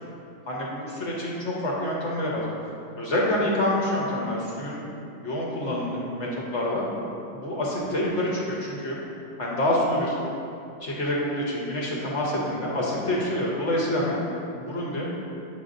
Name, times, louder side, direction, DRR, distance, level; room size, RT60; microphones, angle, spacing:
voice 1, 0.5-2.5 3.0-4.8 5.2-6.9 7.3-9.0 9.4-10.2 10.8-14.2 14.6-15.1, left 1 dB, 55° left, -4 dB, 0.9 m, -27 dB
7.7 x 5.5 x 2.6 m, 2.7 s
omnidirectional pair, 1.9 m